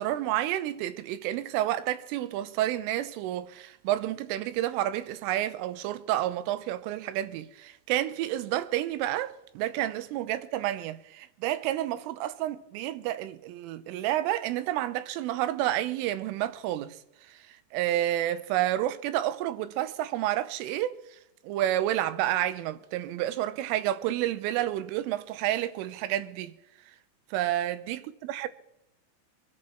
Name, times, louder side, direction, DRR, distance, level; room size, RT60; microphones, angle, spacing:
voice 1, 0.0-17.0 17.7-21.0 21.4-26.5 27.3-28.0 28.3-28.5, right 13 dB, 90° right, 3.4 m, -30 dB
24.5 x 10.5 x 4.4 m
omnidirectional pair, 5.6 m